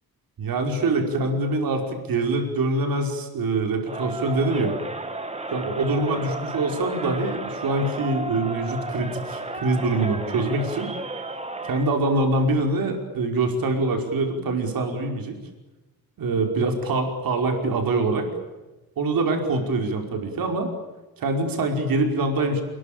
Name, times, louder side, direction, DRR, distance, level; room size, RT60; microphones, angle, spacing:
voice 1, 0.4-4.7 5.5-10.9 11.6-15.4 16.2-18.3 19.0-20.7 21.2-22.6, right 2 dB, 70° right, 4 dB, 5.3 m, -24 dB
Crowd, 3.8-12.0, right 2 dB, 20° right, 2.1 m, -33 dB
29.0 x 22.0 x 8.8 m, 1.1 s
wide cardioid pair, 160°, 36 cm